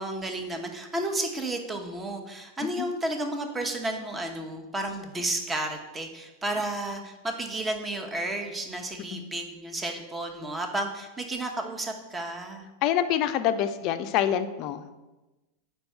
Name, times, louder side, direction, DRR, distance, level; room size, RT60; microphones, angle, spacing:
voice 1, 0.0-12.7, right 1 dB, 15° right, 4 dB, 0.9 m, -32 dB
voice 2, 12.8-14.9, left 10 dB, 50° left, 10 dB, 0.4 m, -26 dB
4.5 x 4.5 x 5.3 m, 1.1 s
hypercardioid pair, 95°, 0 cm